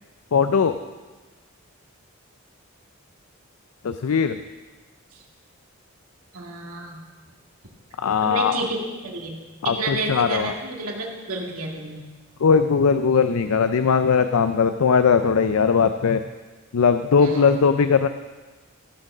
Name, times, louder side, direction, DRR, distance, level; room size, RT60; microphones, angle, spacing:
voice 1, 0.3-0.8 3.8-4.4 8.0-8.5 9.6-10.5 12.4-16.2 16.7-18.1, left 6 dB, 80° left, 10 dB, 0.5 m, -19 dB
voice 2, 6.3-7.0 8.2-9.4 9.6-12.1 17.2-17.6, right 2 dB, 85° right, 0 dB, 2.1 m, -30 dB
15.5 x 6.6 x 6.1 m, 1.3 s
head